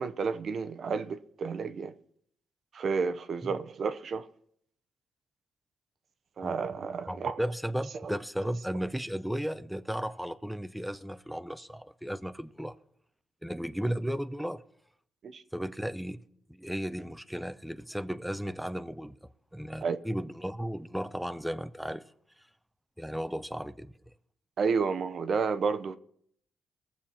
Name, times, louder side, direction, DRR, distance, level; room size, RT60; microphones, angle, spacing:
voice 1, 0.0-1.9 2.7-4.3 6.4-7.4 8.0-8.2 15.2-15.4 19.8-20.0 24.6-26.0, right 5 dB, 55° right, 0.7 m, -31 dB
voice 2, 7.1-12.7 13.4-14.6 15.5-16.2 16.5-19.2 19.5-22.0 23.0-23.9, equal, ahead, 0.5 m, -35 dB
19.0 x 7.1 x 4.4 m
cardioid pair, 85°, 0 cm